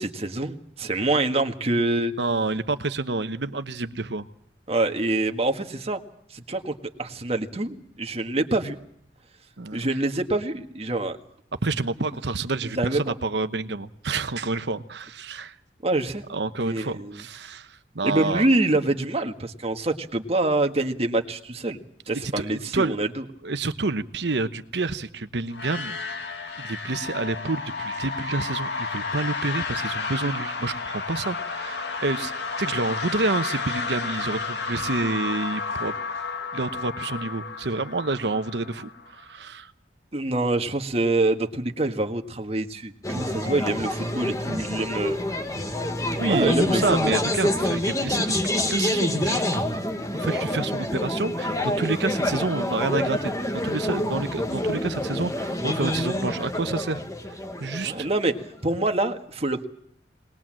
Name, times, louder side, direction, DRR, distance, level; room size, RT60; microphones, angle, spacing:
voice 1, 0.0-2.1 4.7-6.0 6.3-8.8 9.7-11.2 12.7-13.1 15.8-16.2 16.6-17.2 18.0-21.8 22.1-23.2 40.1-45.2 46.3-47.1 57.8-58.3 58.6-59.6, right 2 dB, 35° right, 5 dB, 1.7 m, -25 dB
voice 2, 2.2-4.3 9.6-9.8 11.6-15.5 16.3-18.4 22.4-23.0 23.4-26.0 26.6-32.3 32.6-35.9 36.5-39.7 46.2-48.3 48.7-49.8 50.1-57.0 57.6-58.1, right 3 dB, 70° right, 11 dB, 1.0 m, -28 dB
sound 1, 25.5-39.2, left 4 dB, 70° left, 2.3 m, -32 dB
sound 2, 43.0-58.5, left 1 dB, 20° left, 1.7 m, -27 dB
21.0 x 20.5 x 7.6 m, 0.66 s
head